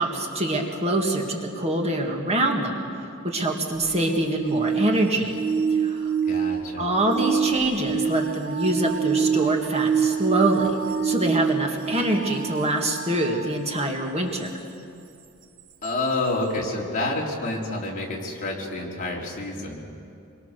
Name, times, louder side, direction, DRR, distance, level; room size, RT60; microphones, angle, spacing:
voice 1, 0.0-2.8 3.2-5.3 5.7-6.1 6.8-10.8 11.0-14.5, right 1 dB, 30° right, 1 dB, 2.2 m, -25 dB
sound 1, 3.8-13.5 15.8-15.9, right 6 dB, 65° right, 1.3 m, -26 dB
voice 2, 6.3-6.9 15.8-19.8, left 2 dB, 40° left, -2 dB, 4.0 m, -28 dB
27.0 x 23.0 x 6.8 m, 2.6 s
head